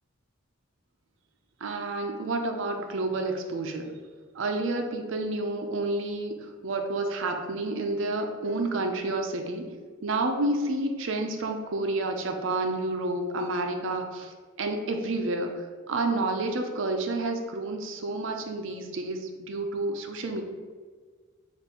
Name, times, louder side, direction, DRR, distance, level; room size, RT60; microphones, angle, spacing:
voice 1, 1.6-3.9 4.3-9.7 10.0-14.3 14.6-20.4, right 2 dB, 65° right, 4 dB, 0.5 m, -30 dB
6.9 x 2.5 x 2.9 m, 1.5 s
head